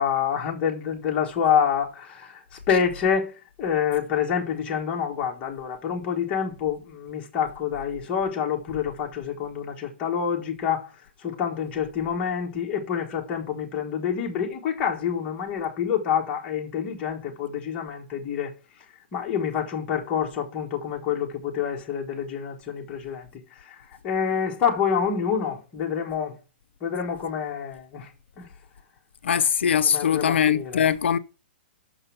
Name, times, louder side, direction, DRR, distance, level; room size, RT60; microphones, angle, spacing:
voice 1, 0.0-10.9 11.2-18.5 19.1-23.3 23.6-26.4 26.8-28.1 28.4-28.5 29.8-30.9, left 7 dB, 20° left, 1.4 m, -27 dB
voice 2, 29.2-31.2, left 8 dB, 90° left, 0.6 m, -21 dB
6.1 x 5.4 x 7.0 m
hypercardioid pair, 170°, 6 cm